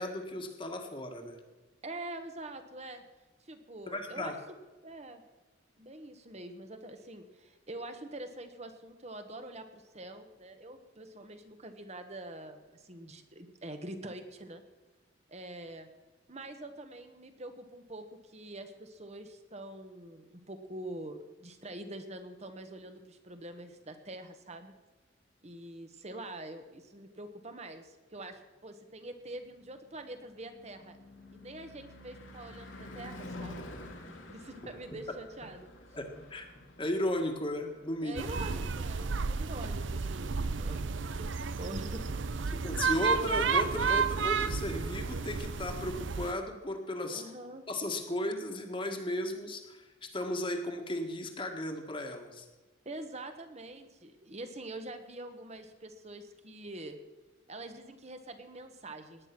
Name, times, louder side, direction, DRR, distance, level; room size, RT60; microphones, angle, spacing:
voice 1, 0.0-1.4 3.9-4.3 35.9-36.5 36.8-38.2 42.5-47.2 47.7-52.5, left 1 dB, 25° left, 4 dB, 1.8 m, -35 dB
voice 2, 1.8-3.0 3.4-4.3 4.8-5.2 5.8-14.6 15.3-15.9 16.3-24.7 25.4-31.0 31.3-33.7 34.3-35.7 38.0-42.0 42.3-42.5 47.1-47.6 52.8-57.0 57.5-59.3, right 1 dB, 35° right, 7 dB, 1.4 m, -45 dB
Car passing by / Truck / Engine, 29.2-39.5, left 1 dB, 85° left, 2.4 m, -49 dB
sound 1, 38.2-46.3, right 5 dB, 75° right, 0.7 m, -32 dB
18.5 x 10.0 x 6.1 m, 1.2 s
head